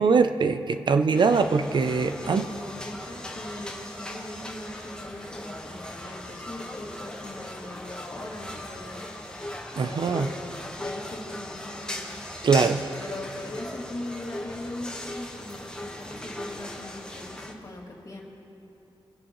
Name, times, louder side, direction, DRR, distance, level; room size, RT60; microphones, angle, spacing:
voice 1, 0.0-2.5 9.8-10.3 12.4-12.8, right 5 dB, 55° right, 9 dB, 0.5 m, -22 dB
voice 2, 1.1-1.5 2.2-18.2, left 1 dB, 40° left, -2 dB, 2.2 m, -40 dB
sound 1, 1.1-17.5, left 1 dB, 10° left, 1.3 m, -39 dB
27.5 x 10.0 x 3.1 m, 2.9 s
wide cardioid pair, 110°, 9 cm